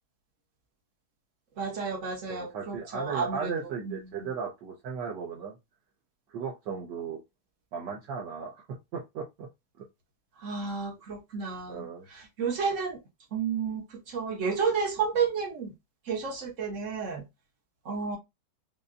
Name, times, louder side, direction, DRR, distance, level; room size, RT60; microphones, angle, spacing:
voice 1, 1.6-3.5 3.9-4.0 10.4-13.0 13.3-15.7 16.1-17.2 17.8-18.2, right 5 dB, 50° right, 1.0 m, -31 dB
voice 2, 2.3-5.6 6.3-7.2 7.7-8.6 8.9-9.5 11.7-12.1, right 6 dB, 65° right, 1.3 m, -36 dB
5.4 x 2.2 x 2.5 m
omnidirectional pair, 2.3 m